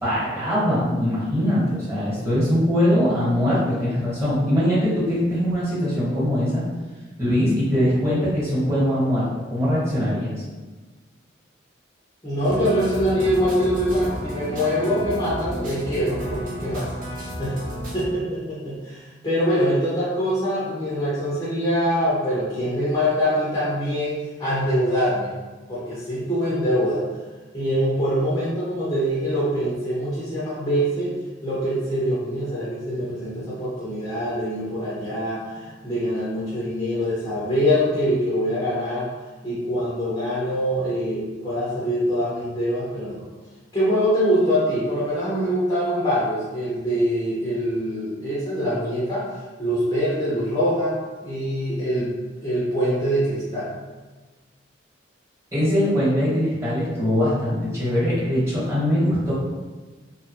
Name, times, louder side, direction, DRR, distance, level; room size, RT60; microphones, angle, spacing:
voice 1, 0.0-6.6 7.2-10.4 55.5-59.3, equal, 15° right, -9 dB, 1.2 m, -22 dB
voice 2, 12.2-16.9 17.4-17.6 17.9-25.3 25.7-27.0 27.5-31.1 31.4-39.1 39.4-43.3 43.7-49.2 49.6-51.0 51.2-52.1 52.4-53.7, equal, 20° left, -9 dB, 0.6 m, -24 dB
sound 1, 12.4-18.1, equal, 45° right, 0.5 m, -32 dB
2.8 x 2.2 x 2.9 m, 1.3 s
head